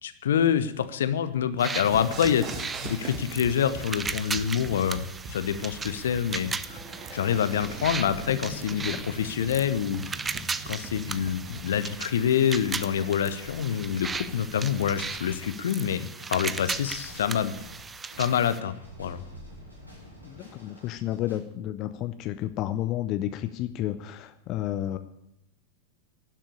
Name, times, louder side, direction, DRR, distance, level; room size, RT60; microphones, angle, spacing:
voice 1, 0.0-6.8 7.1-10.0 10.7-17.5 18.2-19.2, left 8 dB, 60° left, 13 dB, 0.9 m, -26 dB
sound 1, 1.6-18.6, right 4 dB, 15° right, 0.6 m, -37 dB
sound 2, 1.8-11.6, right 3 dB, 30° right, 1.8 m, -41 dB
sound 3, 3.6-21.4, equal, 85° right, 5.9 m, -48 dB
voice 2, 20.2-25.0, left 13 dB, 40° left, 11 dB, 0.7 m, -31 dB
12.0 x 7.6 x 9.9 m, 0.83 s
figure-of-eight pair, 90°, 0 cm